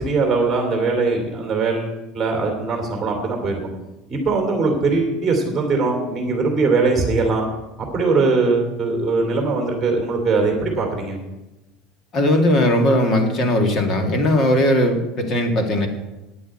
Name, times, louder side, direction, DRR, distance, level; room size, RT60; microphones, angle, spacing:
voice 1, 0.0-3.6 4.1-7.4 7.9-11.2, right 3 dB, 10° right, 2 dB, 2.6 m, -21 dB
voice 2, 12.1-15.9, left 1 dB, 30° left, 5 dB, 1.9 m, -18 dB
9.2 x 8.5 x 8.8 m, 1.0 s
cardioid pair, 170°, 0 cm